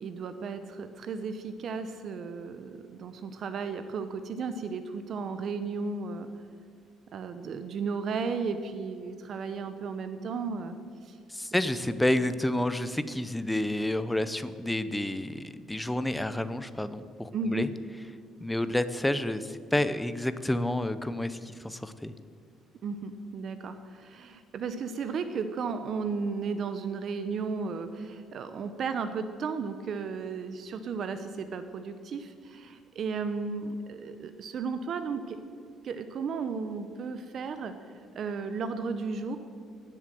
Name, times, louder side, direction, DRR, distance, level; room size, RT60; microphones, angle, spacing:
voice 1, 0.0-6.3 7.1-10.8 11.0-11.2 17.3-17.7 22.8-35.4 35.8-37.7 38.1-39.4, right 5 dB, 40° right, 9 dB, 0.7 m, -34 dB
voice 2, 11.3-17.7 18.4-22.1, left 1 dB, 5° left, 12 dB, 0.6 m, -29 dB
18.0 x 7.7 x 7.6 m, 2.2 s
cardioid pair, 170°, 0 cm